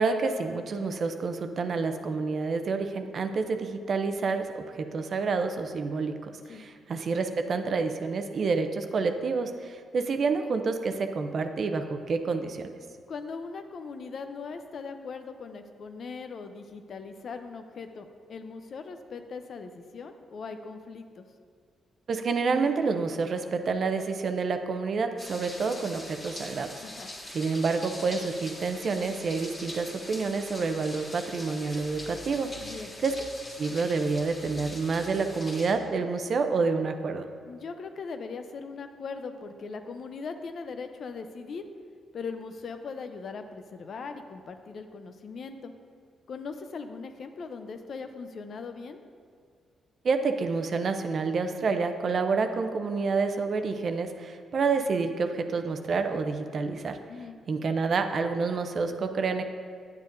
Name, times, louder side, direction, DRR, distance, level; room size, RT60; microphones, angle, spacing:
voice 1, 0.0-12.7 22.1-26.7 27.3-32.7 33.0-33.1 33.6-37.3 50.0-57.0 57.5-59.4, right 4 dB, 60° right, 7 dB, 0.5 m, -28 dB
voice 2, 13.1-21.3 26.8-27.1 32.6-32.9 37.5-41.6 42.1-45.7 46.3-49.0 57.1-57.4, left 4 dB, 60° left, 8 dB, 0.5 m, -40 dB
sound 1, 25.2-35.7, left 1 dB, 40° left, 1.9 m, -43 dB
9.4 x 7.2 x 2.6 m, 2.1 s
supercardioid pair, 60°, 0 cm